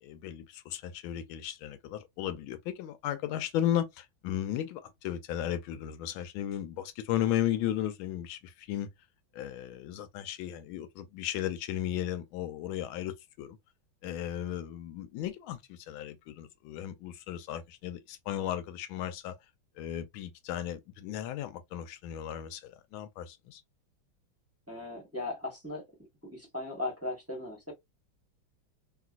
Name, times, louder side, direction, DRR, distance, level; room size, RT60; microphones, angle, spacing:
voice 1, 0.0-8.9 9.3-13.6 14.0-19.4 19.8-23.6, left 11 dB, 90° left, 1.4 m, -35 dB
voice 2, 24.7-25.8 26.2-27.7, left 2 dB, 10° right, 0.8 m, -37 dB
2.9 x 2.9 x 2.4 m
omnidirectional pair, 2.2 m